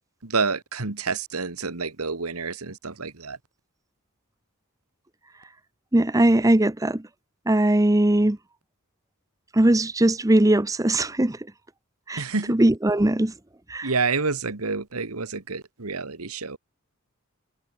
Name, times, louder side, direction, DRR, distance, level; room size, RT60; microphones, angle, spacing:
voice 1, 0.2-3.4 12.2-12.5 13.8-16.6, right 4 dB, 85° right, 1.8 m, -28 dB
voice 2, 5.9-7.0 7.5-8.4 9.5-11.4 12.1-13.3 13.7-13.9, right 1 dB, 15° right, 0.7 m, -20 dB
head